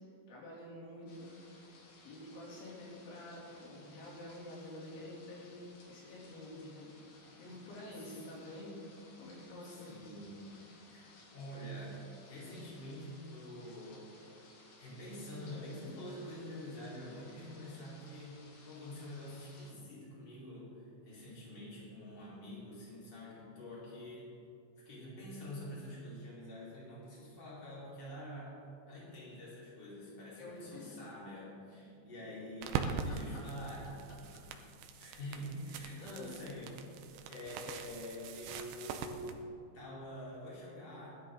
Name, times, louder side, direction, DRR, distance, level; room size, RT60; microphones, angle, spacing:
voice 1, 0.3-1.5 2.1-6.9 7.2-8.8 9.2-10.2 30.4-31.0 32.9-33.4 35.1-35.4 35.7-36.4, left 1 dB, 80° left, -5 dB, 5.4 m, -49 dB
sound 1, 1.1-19.7, left 2 dB, 55° left, 2.7 m, -60 dB
voice 2, 7.2-7.9 9.6-10.5 10.9-14.3 14.8-24.3 24.8-28.6 28.9-33.9 35.0-36.8 37.3-39.4 39.7-41.1, equal, 25° left, -7 dB, 4.5 m, -47 dB
sound 2, 32.6-39.3, right 6 dB, 80° right, 2.2 m, -42 dB
19.5 x 12.0 x 3.9 m, 2.5 s
omnidirectional pair, 5.3 m